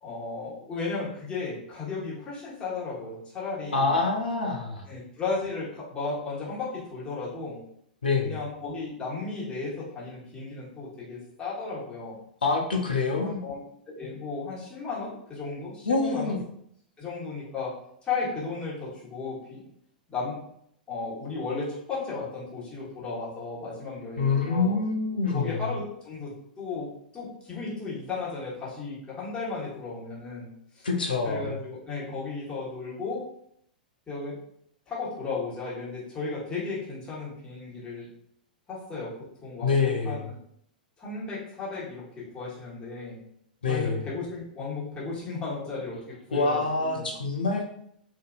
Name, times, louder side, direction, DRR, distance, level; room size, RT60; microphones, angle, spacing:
voice 1, 0.0-3.9 4.9-7.7 8.2-12.2 13.2-16.3 17.0-19.7 20.1-20.5 20.9-24.8 25.3-30.9 31.2-33.3 34.1-34.4 34.9-38.1 38.7-40.4 41.0-43.2 43.7-47.1, left 4 dB, 20° left, -8 dB, 1.4 m, -35 dB
voice 2, 3.7-4.9 8.0-8.4 12.4-13.4 15.9-16.4 24.2-25.7 30.8-31.5 39.6-40.3 43.6-44.1 46.3-47.6, left 4 dB, 85° left, 1 dB, 0.5 m, -26 dB
2.6 x 2.5 x 2.4 m, 0.72 s
hypercardioid pair, 110°, 5 cm